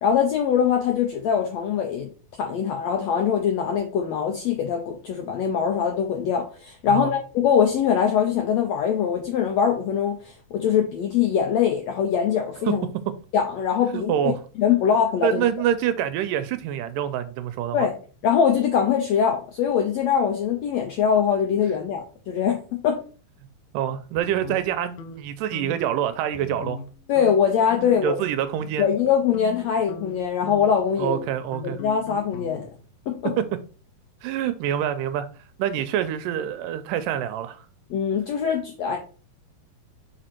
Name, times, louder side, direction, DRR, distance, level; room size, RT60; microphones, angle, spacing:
voice 1, 0.0-2.1 2.4-12.9 13.3-14.3 14.6-15.4 17.7-17.9 18.2-23.0 27.1-28.2 28.8-31.2 31.6-32.6 33.1-33.3 37.9-39.0, left 7 dB, 85° left, 1.5 m, -22 dB
voice 2, 13.9-14.4 15.2-17.9 23.7-26.8 27.8-28.9 31.0-31.8 33.4-33.5 34.2-35.3 35.6-37.7, right 10 dB, 80° right, 2.0 m, -26 dB
sound 1, 24.2-25.2 25.5-25.9 26.3-26.9 27.2-27.4 27.7-28.1 28.5-32.9, left 5 dB, 70° left, 1.9 m, -39 dB
5.1 x 4.9 x 4.3 m
omnidirectional pair, 4.1 m